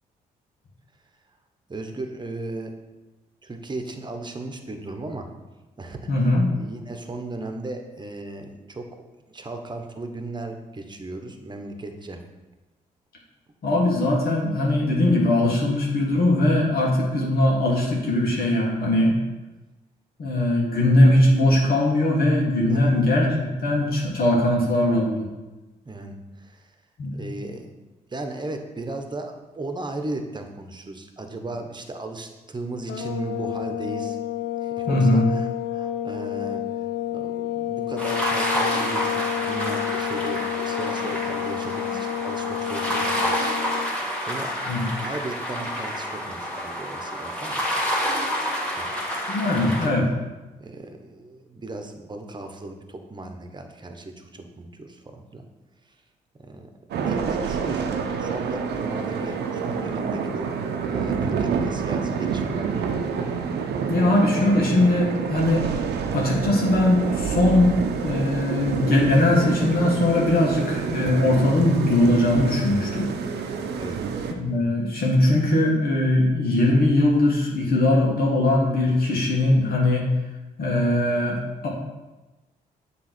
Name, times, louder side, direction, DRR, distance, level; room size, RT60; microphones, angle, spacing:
voice 1, 1.7-2.7 3.4-5.3 5.8-6.1 6.6-8.9 9.3-12.2 22.7-22.9 25.8-26.7 27.1-27.7 28.1-34.2 34.6-36.6 37.1-43.4 43.8-44.5 45.0-47.7 48.7-48.9 49.4-49.9 50.6-55.4 56.4-60.5 60.8-63.0 73.8-74.0, right 2 dB, 25° right, 5 dB, 1.1 m, -36 dB
voice 2, 6.1-6.4 13.6-19.1 20.2-25.3 27.0-27.2 34.9-35.3 44.7-44.9 49.3-50.1 63.9-65.7 66.1-67.8 68.0-73.1 74.4-80.0 80.6-81.7, left 1 dB, 60° left, -3 dB, 1.7 m, -20 dB
sound 1, 32.9-43.9, left 12 dB, 80° left, 0.6 m, -30 dB
sound 2, 38.0-49.9, equal, 5° left, 2.5 m, -28 dB
sound 3, 56.9-74.3, right 6 dB, 75° right, 0.7 m, -28 dB
7.5 x 3.3 x 6.1 m, 1.1 s
supercardioid pair, 55°, 17 cm